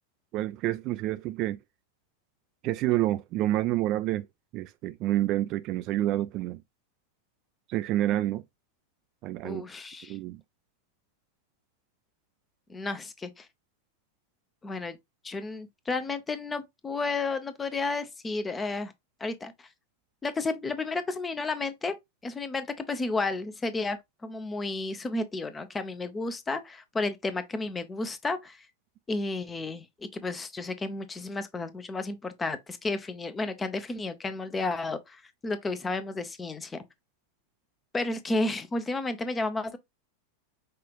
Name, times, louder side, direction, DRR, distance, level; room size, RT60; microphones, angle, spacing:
voice 1, 0.3-1.6 2.6-4.3 4.5-6.6 7.7-8.4 9.2-9.6 10.1-10.4, right 14 dB, 40° right, 0.3 m, -28 dB
voice 2, 9.4-10.2 12.7-13.5 14.6-15.0 15.2-18.9 19.2-19.7 20.2-21.9 22.2-28.7 29.1-36.8 37.9-39.8, left 3 dB, 15° left, 0.6 m, -32 dB
5.5 x 2.5 x 2.9 m
figure-of-eight pair, 90°, 0 cm